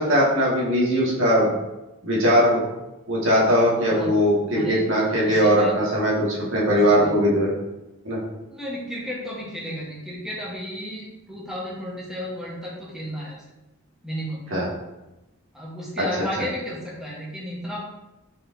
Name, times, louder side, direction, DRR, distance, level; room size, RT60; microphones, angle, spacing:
voice 1, 0.0-1.5 2.0-2.6 3.1-7.5 8.0-8.2 14.5-14.6, equal, 60° right, -6 dB, 1.5 m, -20 dB
voice 2, 5.2-5.8 6.7-7.1 8.5-13.4 14.0-14.4 15.5-17.8, equal, ahead, -5 dB, 0.9 m, -33 dB
4.6 x 4.2 x 2.5 m, 0.97 s
head